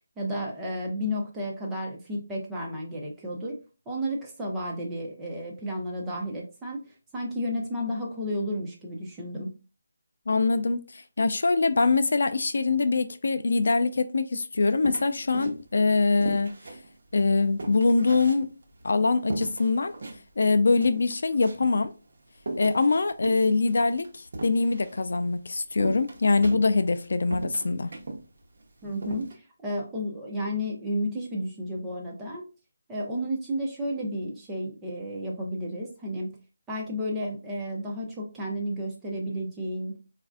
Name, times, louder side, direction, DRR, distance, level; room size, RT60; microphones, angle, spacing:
voice 1, 0.2-3.6 3.9-6.8 7.1-9.5 28.8-32.4 32.9-36.3 36.7-39.9, equal, 5° right, 0.5 m, -32 dB
voice 2, 10.3-16.5 17.1-18.5 18.8-19.9 20.4-21.9 22.6-27.9, left 3 dB, 60° left, 0.3 m, -23 dB
sound 1, 14.8-15.8 16.2-18.8 19.3-20.2 20.5-20.6 20.8-21.8 22.4-25.0 25.8-27.0 27.3-28.2 28.6-28.7 29.0-29.3, right 2 dB, 50° right, 0.8 m, -36 dB
4.1 x 2.5 x 2.3 m
hypercardioid pair, 175°, 0 cm